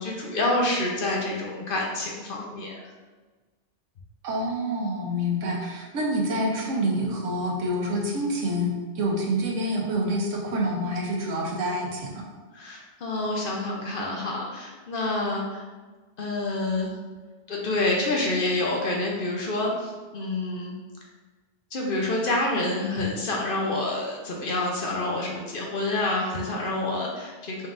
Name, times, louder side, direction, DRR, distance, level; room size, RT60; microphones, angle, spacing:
voice 1, 0.0-2.8 12.5-15.6 16.2-17.0 17.5-20.7 21.7-27.7, left 2 dB, 55° left, -1 dB, 0.7 m, -28 dB
voice 2, 4.2-12.3, equal, 90° right, -1 dB, 1.1 m, -27 dB
4.0 x 3.6 x 2.5 m, 1.3 s
omnidirectional pair, 1.3 m